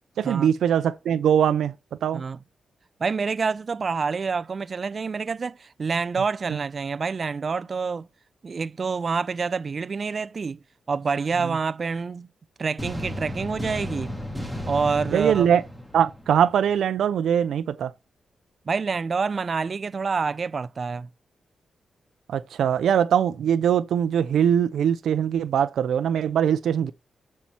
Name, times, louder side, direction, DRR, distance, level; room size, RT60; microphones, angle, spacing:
voice 1, 0.2-1.7 2.0-2.2 11.4-11.6 15.1-15.6 15.9-17.9 22.3-26.9, right 8 dB, 85° right, 0.6 m, -22 dB
voice 2, 3.0-8.1 8.4-10.6 10.9-12.3 12.6-14.1 14.7-15.5 18.7-21.1, right 5 dB, 45° right, 0.5 m, -27 dB
sound 1, 12.8-16.8, left 1 dB, 10° left, 1.9 m, -34 dB
7.2 x 5.6 x 5.9 m
cardioid pair, 95°, 0 cm